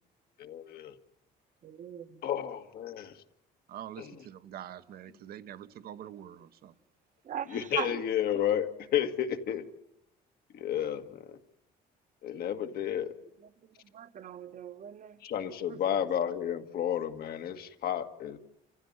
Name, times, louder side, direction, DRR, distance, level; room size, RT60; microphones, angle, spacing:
voice 1, 0.4-1.0 2.2-3.2 4.0-4.1 7.5-9.7 10.5-11.4 12.2-13.1 15.2-18.4, left 10 dB, 65° left, 2.0 m, -32 dB
voice 2, 1.6-2.2 7.2-8.0 13.6-15.2 15.7-15.8, right 10 dB, 50° right, 1.3 m, -40 dB
voice 3, 3.7-6.7, right 10 dB, 65° right, 1.2 m, -45 dB
29.5 x 15.5 x 9.6 m
cardioid pair, 110°, 17 cm